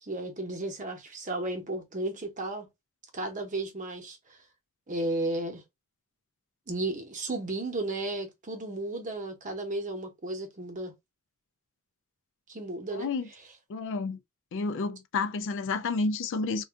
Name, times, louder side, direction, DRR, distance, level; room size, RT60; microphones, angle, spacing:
voice 1, 0.0-2.7 3.1-4.2 4.9-5.6 6.7-10.9 12.5-13.1, right 2 dB, 35° right, 0.9 m, -34 dB
voice 2, 12.9-13.3 13.7-14.2 14.5-16.6, left 4 dB, 60° left, 0.4 m, -30 dB
2.6 x 2.3 x 3.5 m
head